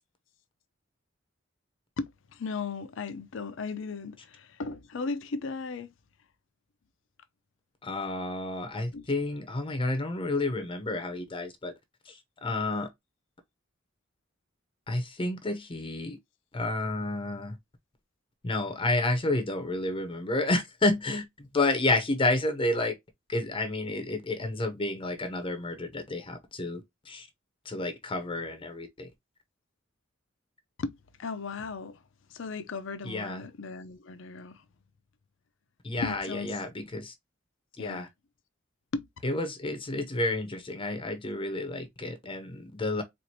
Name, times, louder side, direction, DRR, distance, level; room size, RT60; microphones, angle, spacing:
voice 1, 2.0-5.9 8.9-9.1 30.8-32.0 32.3-34.6 36.0-36.6 37.8-38.1 38.9-39.1, left 4 dB, 65° left, 0.5 m, -36 dB
voice 2, 7.8-11.7 12.1-12.9 14.9-16.2 16.5-17.6 18.4-22.9 23.3-27.3 27.6-29.1 33.0-33.4 35.8-37.1 37.8-38.1 39.2-43.0, left 2 dB, 25° left, 0.7 m, -30 dB
4.4 x 2.5 x 2.7 m
head